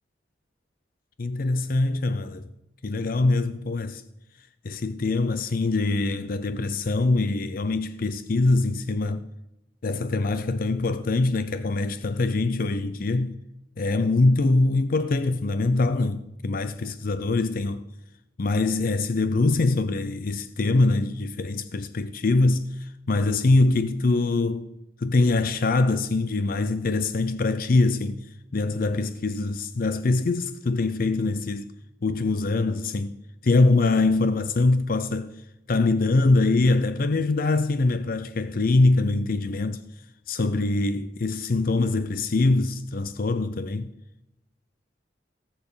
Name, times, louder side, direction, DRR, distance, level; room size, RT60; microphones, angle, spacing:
voice 1, 1.2-2.5 2.8-4.0 4.6-9.2 9.8-13.4 13.8-17.8 18.4-24.7 25.0-28.2 28.5-31.7 32.0-33.1 33.4-35.3 35.7-39.8 40.3-43.9, left 3 dB, 55° left, 0.5 m, -23 dB
18.0 x 7.1 x 5.5 m
head